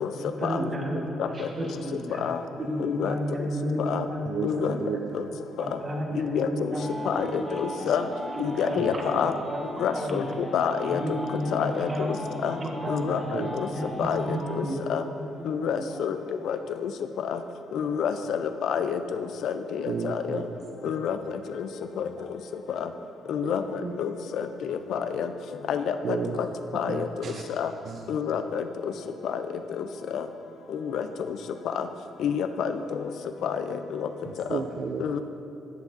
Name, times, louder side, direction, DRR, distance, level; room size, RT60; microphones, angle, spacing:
voice 1, 0.2-2.2 2.6-4.3 4.6-4.8 5.6-7.7 8.3-9.6 9.9-10.3 10.8-12.3 12.6-13.3 13.7-14.8 15.1-15.2 15.6-15.9 18.7-18.8 20.6-20.7 22.2-22.3 23.8-23.9 26.8-26.9 27.2-27.4, equal, 35° right, -1 dB, 1.2 m, -32 dB
voice 2, 2.8-3.1 3.9-4.0 4.4-4.7 6.2-6.5 7.1-8.0 8.4-9.3 9.8-10.2 10.5-11.0 11.5-12.2 12.4-12.5 12.9-13.7 14.0-14.6 14.9-15.0 15.5-16.2 16.4-16.9 17.3-17.4 17.7-19.0 19.4-20.4 20.8-21.2 23.3-23.6 24.0-24.1 24.7-25.3 25.7-25.9 26.7-27.1 27.6-27.7 28.1-28.6 29.2-29.4 29.8-29.9 30.1-30.2 30.9-31.0 32.2-32.7 33.4-33.5 34.0-34.1 35.0-35.2, left 8 dB, 75° left, 9 dB, 0.4 m, -28 dB
voice 3, 4.3-5.3 6.1-6.3 8.8-9.2 13.3-13.5 19.8-20.6 23.4-23.5 26.0-26.4 26.9-27.4 27.8-28.1 34.3-35.2, right 6 dB, 60° right, 4 dB, 0.4 m, -33 dB
sound 1, 6.7-14.7, left 1 dB, 20° left, 1.2 m, -38 dB
10.5 x 7.3 x 2.6 m, 2.8 s
cardioid pair, 90°, 0 cm